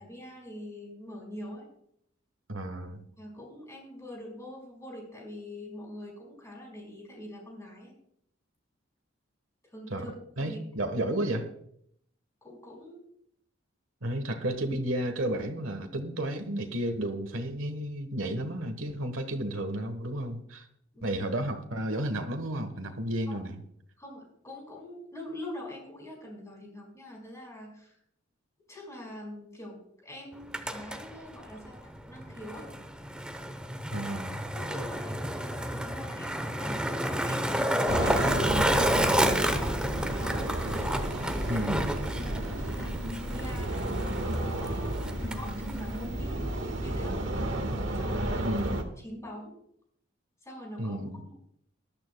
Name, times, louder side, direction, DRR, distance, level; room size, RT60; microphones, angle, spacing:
voice 1, 0.0-1.7 3.2-7.9 9.7-10.6 12.4-13.0 20.9-21.2 23.3-23.4 24.0-27.9 28.7-32.7 33.9-34.1 34.5-37.5 38.0-40.5 41.5-41.7 42.0-42.9 43.2-43.9 44.2-47.2 47.9-48.6 49.0-49.5 50.4-51.3, left 1 dB, 15° left, -1 dB, 5.0 m, -44 dB
voice 2, 2.5-3.0 9.9-10.1 10.4-11.5 14.0-20.7 21.0-23.6 33.9-34.4 41.5-41.9 48.4-48.8 50.8-51.2, right 1 dB, 80° right, 7 dB, 1.4 m, -32 dB
Skateboard, 30.3-46.0, equal, 5° right, 0.9 m, -31 dB
sound 1, 37.9-48.8, right 1 dB, 65° right, 1.6 m, -32 dB
20.5 x 12.0 x 2.3 m, 0.71 s
head